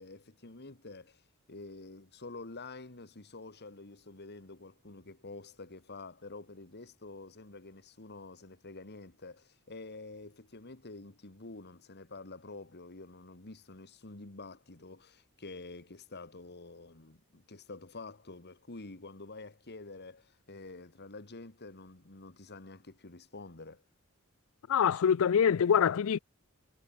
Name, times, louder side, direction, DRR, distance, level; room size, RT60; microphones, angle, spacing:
voice 1, 0.0-23.8, left 3 dB, 50° left, 2.0 m, -48 dB
voice 2, 24.7-26.2, left 7 dB, 70° left, 0.4 m, -25 dB
head